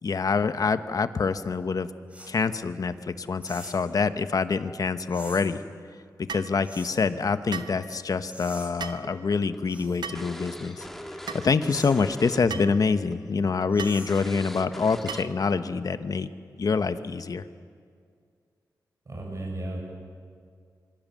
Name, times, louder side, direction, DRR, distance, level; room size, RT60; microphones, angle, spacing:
voice 1, 0.0-1.9 2.3-5.6 6.3-10.9 11.3-16.3 16.6-17.4, left 4 dB, 55° left, 11 dB, 1.1 m, -26 dB
sound 1, 2.1-2.4 3.4-3.9 5.1-5.5 6.6-7.0 8.3-8.7 9.7-10.0 11.7-12.0 13.7-14.3, right 1 dB, 15° right, 5.6 m, -44 dB
sound 2, 6.3-6.5 7.5-7.8 8.8-9.0 10.0-10.3 11.3-11.4 12.5-12.7 13.8-14.0 15.1-15.4, right 6 dB, 80° right, 1.2 m, -36 dB
sound 3, 9.0-12.7 12.9-13.2 13.6-13.7 14.1-15.5, equal, 5° left, 1.7 m, -41 dB
voice 2, 19.1-19.8, right 1 dB, 45° right, -1 dB, 7.3 m, -34 dB
25.5 x 24.0 x 7.6 m, 2.1 s
cardioid pair, 80°, 7 cm